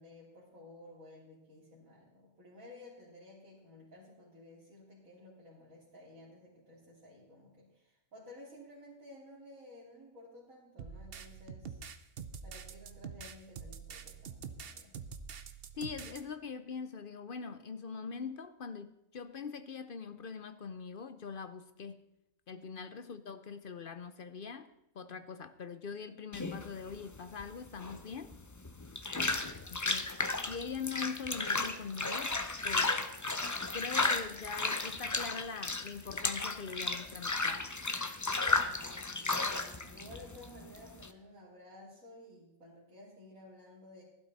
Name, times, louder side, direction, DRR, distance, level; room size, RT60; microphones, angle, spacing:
voice 1, 0.0-11.8 12.4-15.0 22.5-22.8 25.0-25.2 28.9-29.3 38.6-44.0, left 1 dB, 90° right, -6 dB, 3.4 m, -54 dB
sound 1, 10.8-16.2, right 6 dB, 50° right, 0.9 m, -46 dB
voice 2, 15.7-22.0 22.5-28.4 29.4-30.1 30.5-32.4 32.6-33.0 33.7-37.6, left 5 dB, 50° left, 11 dB, 0.7 m, -43 dB
sound 2, 26.3-41.1, left 3 dB, 25° left, 0.4 m, -34 dB
16.0 x 12.0 x 4.1 m, 0.87 s
omnidirectional pair, 1.4 m